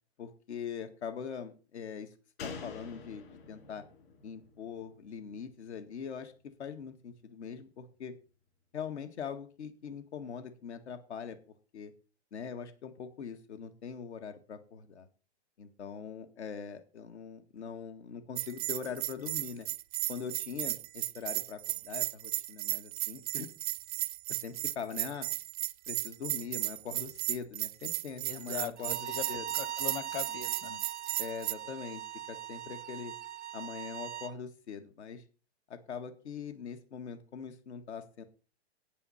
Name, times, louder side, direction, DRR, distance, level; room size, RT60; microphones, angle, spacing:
voice 1, 0.2-2.1 2.4-3.8 4.2-6.3 6.6-8.1 8.7-11.4 11.7-11.9 12.3-15.1 15.6-19.7 20.1-23.5 24.3-25.3 25.9-29.0 29.3-29.4 31.2-32.0 32.3-33.1 33.5-35.2 35.7-38.2, left 6 dB, 80° left, 7 dB, 1.8 m, -42 dB
Slam, 2.4-5.9 6.2-6.3, left 5 dB, 60° left, 6.2 m, -47 dB
Bell, 18.4-31.5, right 17 dB, 35° right, 0.5 m, -35 dB
voice 2, 28.2-30.8, left 10 dB, 25° left, 16 dB, 0.9 m, -41 dB
Bowed string instrument, 28.8-34.3, right 12 dB, 85° right, 0.7 m, -41 dB
9.6 x 8.7 x 5.6 m, 0.36 s
hypercardioid pair, 145°, 34 cm